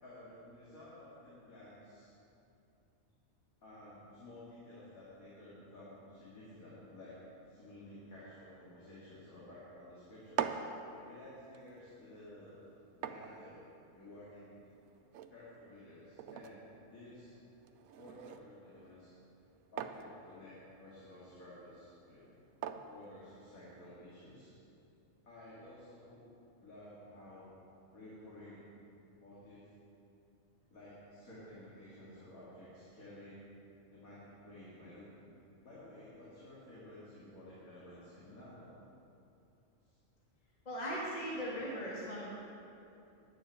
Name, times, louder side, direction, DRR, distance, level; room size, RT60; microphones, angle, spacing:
voice 1, 0.0-2.1 3.6-10.6 11.0-12.6 13.0-14.6 15.3-17.3 18.0-19.1 19.7-22.3 22.9-24.5 25.2-26.3 26.6-27.5 27.9-28.7 29.1-29.6 30.7-33.4 33.9-35.1 35.6-38.8 39.8-40.0, left 1 dB, 75° left, -9 dB, 2.8 m, -53 dB
sound 1, 10.1-24.0, right 8 dB, 90° right, 1.1 m, -46 dB
voice 2, 40.7-42.3, equal, 30° left, -6 dB, 1.9 m, -39 dB
10.5 x 7.1 x 8.2 m, 2.7 s
omnidirectional pair, 1.5 m